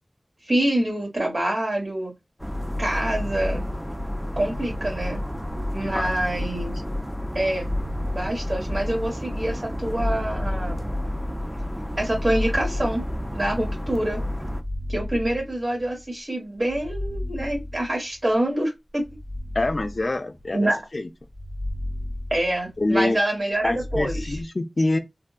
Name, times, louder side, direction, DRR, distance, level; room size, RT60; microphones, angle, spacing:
voice 1, 0.5-2.1 2.8-3.6 4.4-5.2 5.7-6.8 7.3-7.7 8.1-10.8 12.0-13.0 13.3-14.2 14.9-19.0 20.5-20.8 22.3-24.4, right 1 dB, 55° right, 1.4 m, -26 dB
sound 1, 2.4-14.6, left 1 dB, 5° right, 0.4 m, -30 dB
sound 2, 5.1-6.6 7.4-9.1 9.6-11.4 12.0-13.6 14.3-16.1 16.6-18.2 19.0-20.7 21.2-23.0 23.5-24.4, left 1 dB, 25° right, 1.0 m, -34 dB
voice 2, 5.8-6.1 19.5-21.1 22.8-23.2 23.6-25.0, left 2 dB, 65° left, 0.4 m, -25 dB
3.4 x 2.2 x 2.4 m
wide cardioid pair, 60°, 0 cm